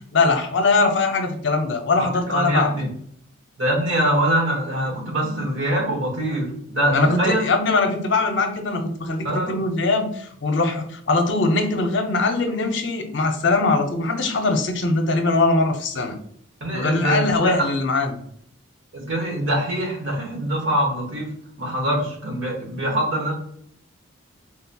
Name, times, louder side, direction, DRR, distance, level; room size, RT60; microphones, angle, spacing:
voice 1, 0.1-2.8 6.9-16.2 16.7-18.2, left 3 dB, 60° left, 4 dB, 0.5 m, -21 dB
voice 2, 2.0-2.9 3.6-7.5 9.2-9.6 10.7-10.8 16.6-17.5 18.9-21.3 21.6-23.3, right 1 dB, 65° right, 0 dB, 1.1 m, -23 dB
3.8 x 2.8 x 2.2 m, 0.66 s
head